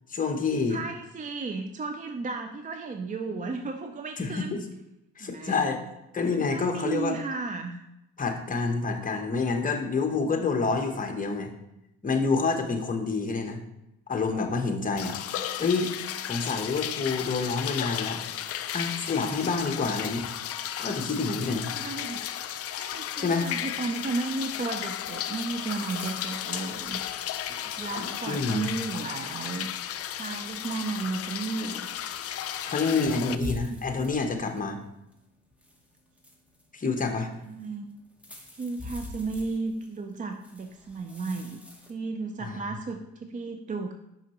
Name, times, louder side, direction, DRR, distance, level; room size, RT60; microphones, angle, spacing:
voice 1, 0.1-0.8 4.2-4.6 5.2-5.8 6.1-7.2 8.2-11.5 12.0-13.6 14.1-15.1 15.6-15.9 16.3-18.2 18.7-20.2 20.8-21.7 23.2-23.5 28.0-28.7 32.7-34.8 36.7-37.3 42.4-42.6, left 4 dB, 25° left, 4 dB, 1.0 m, -28 dB
voice 2, 0.7-4.6 5.2-5.7 6.3-7.9 21.7-22.2 22.7-27.0 27.8-29.7 30.1-31.9 32.9-33.8 37.4-37.9 38.5-41.6 41.9-43.9, right 3 dB, 25° right, 6 dB, 0.4 m, -34 dB
sound 1, 15.0-33.3, left 10 dB, 50° left, 0.4 m, -34 dB
sound 2, 24.3-41.9, left 1 dB, 5° right, 1.0 m, -48 dB
5.8 x 5.5 x 3.0 m, 0.89 s
cardioid pair, 90°, 30 cm